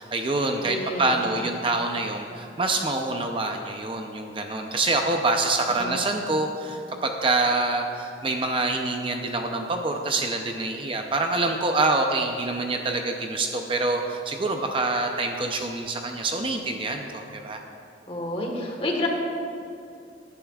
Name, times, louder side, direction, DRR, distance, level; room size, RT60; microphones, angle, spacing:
voice 1, 0.0-17.6, right 2 dB, 30° right, 3 dB, 0.6 m, -26 dB
voice 2, 0.6-1.5 5.8-6.0 18.1-19.1, left 1 dB, 35° left, 0 dB, 1.4 m, -30 dB
18.0 x 11.0 x 2.4 m, 2.5 s
head